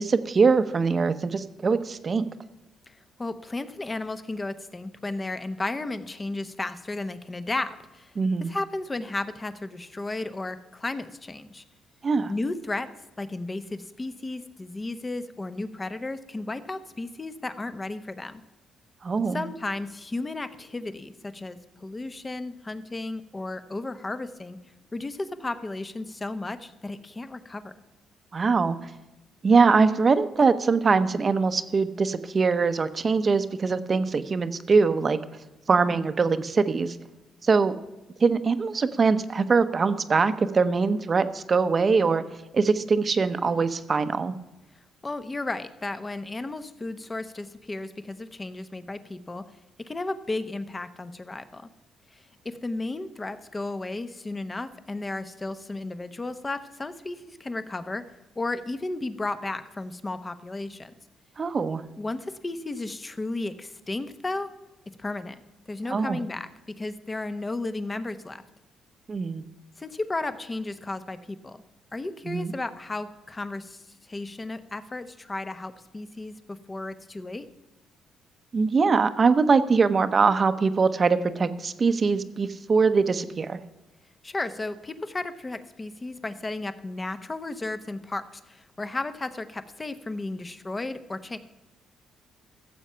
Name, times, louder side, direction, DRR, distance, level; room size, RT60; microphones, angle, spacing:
voice 1, 0.0-2.3 8.2-8.5 12.0-12.3 19.0-19.4 28.3-28.8 29.4-35.2 35.7-37.0 37.4-37.8 38.2-42.2 42.5-44.4 61.4-61.8 65.9-66.2 69.1-69.4 72.3-72.5 78.5-83.6, right 4 dB, 40° right, 11 dB, 0.8 m, -22 dB
voice 2, 2.9-8.1 8.4-11.6 12.3-12.9 13.2-18.4 19.3-24.6 24.9-27.7 45.0-49.4 49.8-51.7 52.1-58.0 58.4-60.9 62.0-64.5 65.0-65.4 65.7-66.5 66.8-68.4 69.8-71.6 71.9-77.5 84.2-91.4, left 2 dB, 25° left, 11 dB, 0.9 m, -34 dB
15.0 x 7.3 x 5.6 m, 1.1 s
cardioid pair, 90°, 0 cm